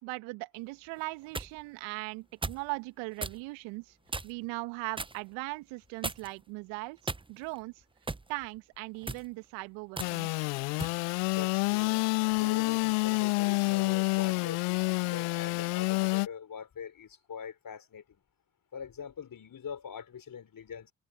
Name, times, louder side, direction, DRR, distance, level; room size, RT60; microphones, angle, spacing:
voice 1, 0.0-4.0 4.2-7.0 7.3-7.7 8.3-10.5, right 25 dB, 70° right, 2.2 m, -39 dB
sound 1, 1.0-1.5 2.4-2.7 3.2-3.4 4.1-4.5 5.0-5.2 6.0-6.4 7.0-7.6 8.1-8.3 8.9-9.3 10.0-10.1 10.8-11.0, right 3 dB, 10° right, 0.8 m, -37 dB
Engine / Sawing, 10.0-16.3, left 32 dB, 75° left, 0.8 m, -28 dB
voice 2, 11.4-12.0 12.4-18.0 18.7-20.9, left 7 dB, 45° left, 4.4 m, -43 dB
hypercardioid pair, 50°, 47 cm